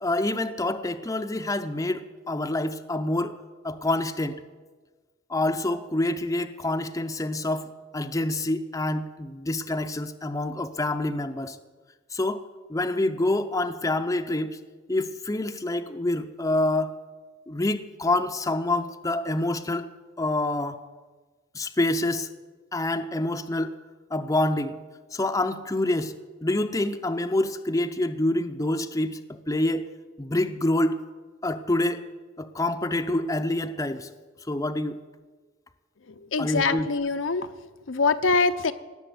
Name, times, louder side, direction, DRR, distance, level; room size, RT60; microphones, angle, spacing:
voice 1, 0.0-3.4 3.6-4.4 5.3-11.6 12.1-12.4 12.7-14.6 14.9-16.9 17.5-20.8 21.5-22.3 22.7-23.7 24.1-24.8 25.1-26.2 26.4-29.9 30.2-31.0 31.4-32.0 32.4-34.1 34.5-35.0 36.4-36.9, left 1 dB, 15° left, 8 dB, 0.6 m, -27 dB
voice 2, 36.3-37.5 37.9-38.7, left 4 dB, 80° left, 9 dB, 0.8 m, -23 dB
18.0 x 7.1 x 9.3 m, 1.4 s
head